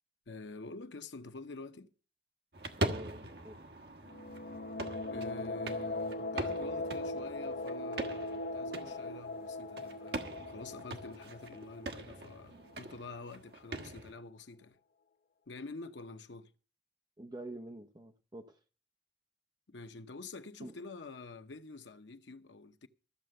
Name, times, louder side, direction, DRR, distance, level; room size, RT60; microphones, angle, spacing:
voice 1, 0.3-1.9 5.1-14.8 15.5-16.5 19.7-22.9, left 3 dB, 90° left, 0.8 m, -48 dB
sound 1, 2.5-14.1, right 1 dB, 65° right, 1.4 m, -42 dB
voice 2, 2.8-3.6 17.2-18.6 20.6-20.7, right 1 dB, 25° right, 0.7 m, -46 dB
sound 2, 4.0-12.7, left 2 dB, 55° left, 0.5 m, -40 dB
14.0 x 6.7 x 7.7 m
head